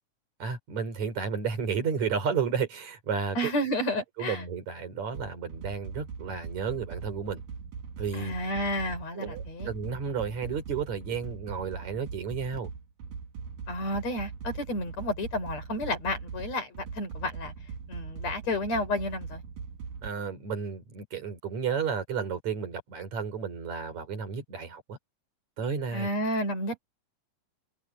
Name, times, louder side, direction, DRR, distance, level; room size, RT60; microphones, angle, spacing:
voice 1, 0.4-3.4 4.2-7.4 8.0-8.3 9.2-12.7 20.0-25.0 25.6-26.1, right 6 dB, 60° right, 5.3 m, -32 dB
voice 2, 3.3-4.4 8.1-9.7 13.7-17.5 17.9-19.4 25.9-26.8, left 1 dB, 55° left, 6.4 m, -31 dB
sound 1, 5.1-20.1, right 5 dB, 85° right, 4.0 m, -41 dB
omnidirectional pair, 3.7 m